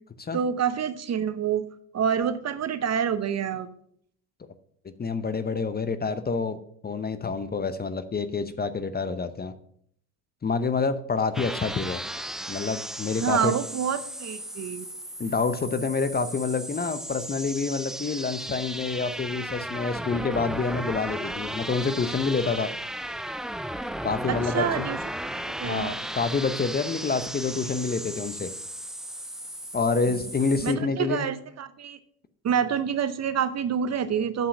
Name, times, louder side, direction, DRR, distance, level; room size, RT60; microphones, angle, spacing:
voice 1, 0.3-1.7 1.9-3.7 13.2-14.9 24.3-25.0 25.6-25.9 30.6-32.0 32.4-34.5, right 7 dB, 40° right, 13 dB, 0.8 m, -27 dB
voice 2, 5.0-6.6 6.8-9.5 10.4-12.0 12.5-13.6 15.2-22.7 24.0-24.9 25.6-28.5 29.7-31.3, left 4 dB, 20° left, 12 dB, 0.7 m, -27 dB
sound 1, 11.3-30.7, right 1 dB, ahead, 0.3 m, -35 dB
7.5 x 5.6 x 7.1 m, 0.67 s
hypercardioid pair, 70°, 43 cm